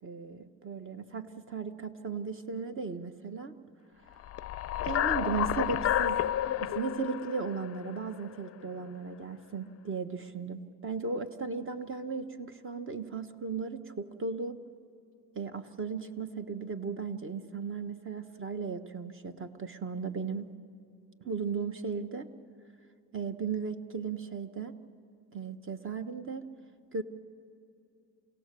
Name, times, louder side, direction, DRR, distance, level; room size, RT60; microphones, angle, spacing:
voice 1, 0.0-3.6 4.8-6.2 6.6-14.6 15.3-20.5 21.2-22.3 23.1-24.7 25.3-26.5 26.9-27.0, right 5 dB, 30° right, 9 dB, 1.3 m, -36 dB
sound 1, 4.2-8.5, left 11 dB, 35° left, 0.6 m, -31 dB
28.0 x 17.0 x 6.9 m, 2.6 s
supercardioid pair, 95°, 42 cm